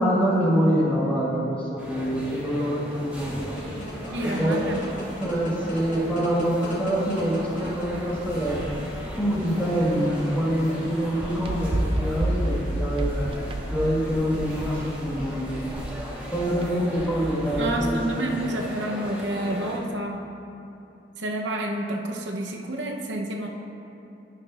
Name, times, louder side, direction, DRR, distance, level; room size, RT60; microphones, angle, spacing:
voice 1, 0.0-4.0 4.2-4.6 5.2-8.8 9.2-13.3 13.7-15.5 16.3-18.3, equal, 10° left, -8 dB, 1.6 m, -25 dB
sound 1, 1.8-19.8, equal, 10° right, 1.4 m, -38 dB
sound 2, 3.1-13.7, equal, 45° left, 1.5 m, -40 dB
voice 2, 4.1-4.8 17.5-20.2 21.2-23.5, right 1 dB, 85° right, 1 dB, 0.8 m, -29 dB
sound 3, 11.2-18.0, right 1 dB, 30° right, 0.4 m, -30 dB
15.0 x 5.8 x 2.5 m, 2.8 s
head